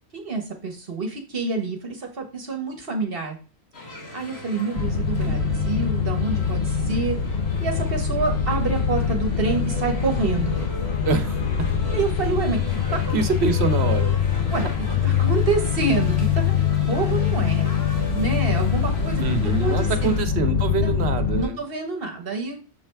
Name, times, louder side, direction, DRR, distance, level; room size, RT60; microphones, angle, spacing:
voice 1, 0.1-3.4 3.8-5.4 5.6-7.2 7.6-10.6 11.9-12.6 13.0-13.2 14.5-14.7 15.0-16.6 16.9-17.7 18.1-19.2 19.6-20.2 20.8-20.9 21.3-22.6, right 4 dB, 60° right, 3 dB, 1.3 m, -27 dB
sound 1, 3.7-20.2, left 1 dB, 75° left, 1.9 m, -39 dB
sound 2, 4.8-21.5, left 7 dB, 50° left, 0.6 m, -23 dB
voice 2, 11.0-11.7 13.1-14.2 19.2-21.6, right 4 dB, 85° right, 9 dB, 1.1 m, -25 dB
7.1 x 3.3 x 4.5 m, 0.35 s
omnidirectional pair, 1.1 m